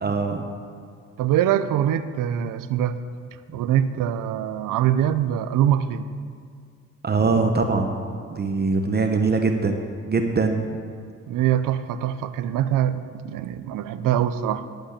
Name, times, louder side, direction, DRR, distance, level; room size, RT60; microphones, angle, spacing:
voice 1, 0.0-0.4 3.5-3.6 7.0-7.9 8.3-10.7, right 4 dB, 30° right, 5 dB, 0.9 m, -22 dB
voice 2, 1.2-3.0 3.5-6.1 11.3-14.6, right 10 dB, 80° right, 13 dB, 0.6 m, -23 dB
12.0 x 5.3 x 8.5 m, 2.2 s
cardioid pair, 80°, 32 cm